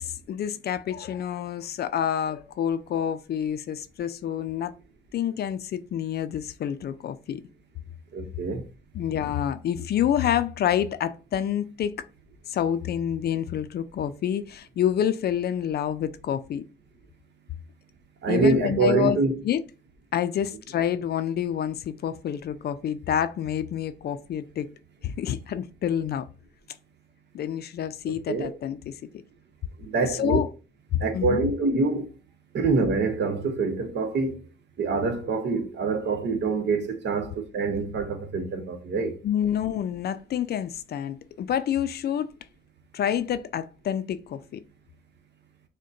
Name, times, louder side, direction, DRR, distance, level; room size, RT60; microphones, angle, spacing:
voice 1, 0.0-4.7 5.1-7.4 8.9-12.1 12.5-16.6 18.3-19.2 19.4-19.6 20.1-24.7 25.0-26.3 27.3-28.8 30.0-30.5 30.9-31.5 39.2-42.3 42.9-44.6, left 9 dB, 55° left, 0.4 m, -28 dB
voice 2, 8.1-8.7 18.2-19.3 28.1-28.5 29.8-30.4 31.0-32.1 32.5-34.5 34.8-39.2, right 4 dB, 60° right, 0.9 m, -25 dB
6.3 x 2.2 x 2.6 m
cardioid pair, 90°, 20 cm